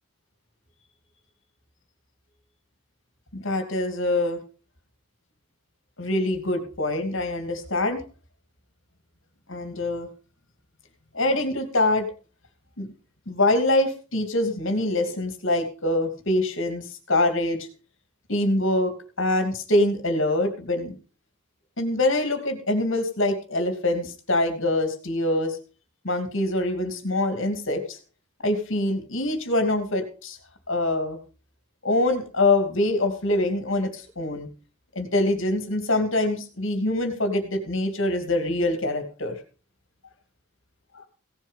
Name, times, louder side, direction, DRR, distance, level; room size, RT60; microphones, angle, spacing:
voice 1, 3.3-4.4 6.0-8.0 9.5-10.1 11.1-12.1 12.8-12.9 13.3-17.7 18.3-21.0 21.8-25.6 26.0-28.0 28.4-30.4 30.7-31.2 31.8-34.5 34.9-39.4 40.9-41.0, left 1 dB, 60° left, 6 dB, 2.7 m, -24 dB
17.0 x 7.4 x 5.7 m, 0.36 s
head